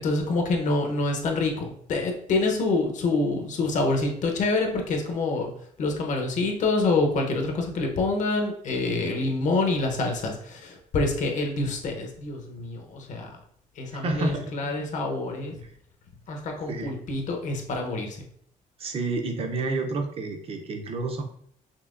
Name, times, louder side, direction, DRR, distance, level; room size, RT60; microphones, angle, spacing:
voice 1, 0.0-5.5 5.8-13.4 13.8-15.6 16.3-18.3, left 3 dB, 55° left, 3 dB, 0.9 m, -26 dB
voice 2, 13.9-14.5 16.7-16.9 18.8-21.2, right 3 dB, 40° right, 4 dB, 0.6 m, -29 dB
5.5 x 2.8 x 2.5 m, 0.64 s
cardioid pair, 165°, 15 cm